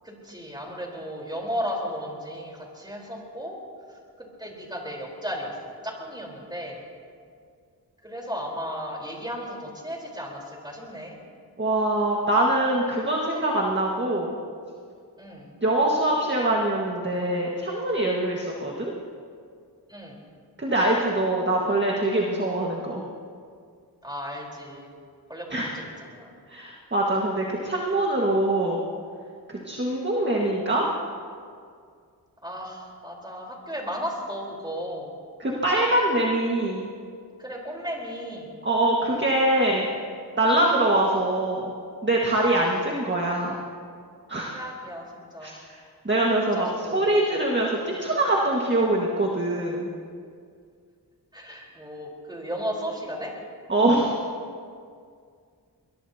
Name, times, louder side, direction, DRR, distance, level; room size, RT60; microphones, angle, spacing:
voice 1, 0.0-3.6 4.2-6.8 8.0-11.2 15.2-15.5 19.9-20.2 24.0-24.9 25.3-26.3 32.4-35.1 37.4-38.5 42.5-42.8 44.5-45.5 46.3-47.1 47.7-47.9 51.3-53.3, equal, 10° right, -2 dB, 4.2 m, -35 dB
voice 2, 11.6-14.4 15.6-18.9 20.6-23.0 25.5-25.7 26.5-28.8 29.5-30.9 35.4-36.9 38.6-39.9 40.4-41.7 42.0-43.5 44.3-44.6 45.4-46.7 46.9-49.9 53.7-54.1, right 1 dB, 30° right, -2 dB, 1.8 m, -23 dB
22.5 x 22.0 x 2.9 m, 2.2 s
wide cardioid pair, 80°, 40 cm